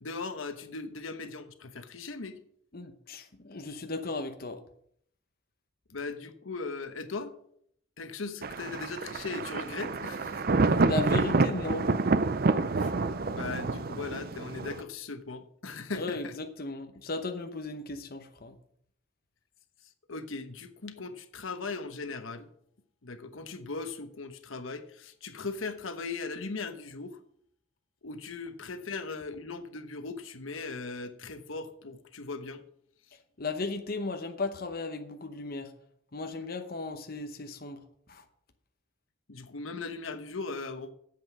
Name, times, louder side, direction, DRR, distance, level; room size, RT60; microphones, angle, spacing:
voice 1, 0.0-2.4 5.9-7.4 8.0-10.4 12.7-12.9 13.3-16.4 20.1-22.5 23.0-27.2 28.0-32.6 39.3-40.9, left 4 dB, 90° left, 1.1 m, -38 dB
voice 2, 2.7-4.6 10.8-11.9 15.9-18.5 33.4-35.7 36.1-37.8 38.1-38.2, left 3 dB, 50° left, 0.9 m, -36 dB
Thunder, 8.4-14.8, right 3 dB, 50° right, 0.5 m, -28 dB
9.2 x 7.7 x 6.1 m
head